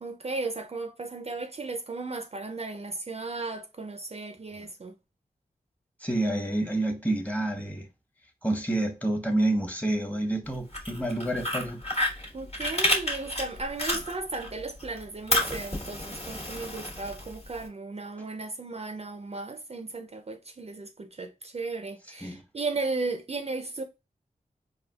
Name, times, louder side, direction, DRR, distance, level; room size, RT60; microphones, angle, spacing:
voice 1, 0.0-4.9 12.3-23.8, right 3 dB, 40° right, 0.4 m, -35 dB
voice 2, 6.0-7.9 8.4-11.8 22.2-22.4, right 1 dB, 10° left, 0.9 m, -28 dB
Fire, 10.6-14.5 14.8-17.6, left 1 dB, 45° left, 1.2 m, -30 dB
4.1 x 2.4 x 2.2 m
cardioid pair, 50°, 16 cm